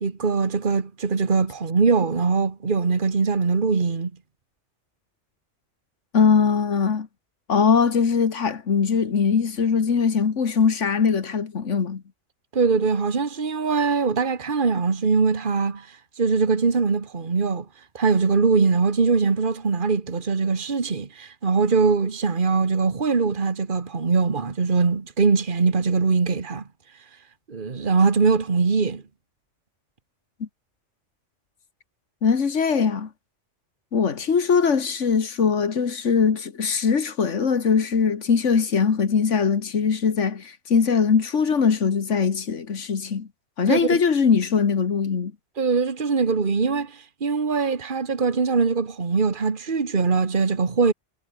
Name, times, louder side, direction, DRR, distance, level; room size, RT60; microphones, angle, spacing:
voice 1, 0.0-4.1 12.5-15.9 16.2-17.7 17.9-26.6 27.5-29.0 43.7-44.0 45.6-50.9, right 4 dB, 45° right, 1.8 m, -22 dB
voice 2, 6.1-7.1 7.5-12.0 30.4-30.5 32.2-33.1 33.9-43.3 43.6-45.3, left 6 dB, 85° left, 1.9 m, -21 dB
omnidirectional pair, 1.2 m